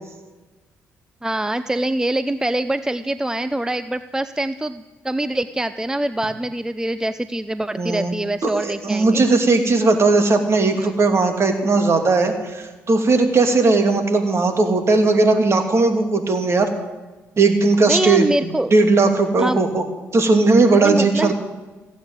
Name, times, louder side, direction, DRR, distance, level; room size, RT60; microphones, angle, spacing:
voice 1, 1.2-9.2 10.8-10.9 17.9-18.7 19.4-19.6 20.8-21.3, right 1 dB, 10° right, 12 dB, 0.6 m, -24 dB
voice 2, 7.8-8.1 8.4-16.7 17.4-19.8 20.1-21.3, right 3 dB, 45° right, 5 dB, 2.8 m, -17 dB
16.0 x 9.3 x 9.0 m, 1.2 s
supercardioid pair, 60°, 6 cm